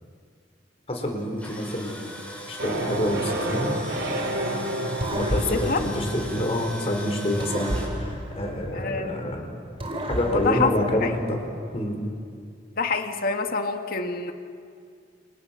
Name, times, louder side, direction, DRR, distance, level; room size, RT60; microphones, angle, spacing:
voice 1, 0.9-2.0 2.5-3.8 5.1-9.5 10.1-11.4 11.7-12.0, left 1 dB, 35° left, 2 dB, 4.8 m, -27 dB
Tools, 1.2-7.9, equal, 10° left, 7.1 m, -39 dB
sound 1, 2.6-9.6, right 1 dB, 65° right, 3.2 m, -32 dB
sound 2, 5.0-6.9 7.4-9.3 9.8-11.5, equal, 30° right, 3.1 m, -33 dB
voice 2, 5.3-5.8 8.7-9.2 10.2-10.7 11.0-11.1 12.8-14.3, left 4 dB, 50° left, 4 dB, 2.0 m, -27 dB
29.5 x 28.5 x 6.0 m, 2.2 s
head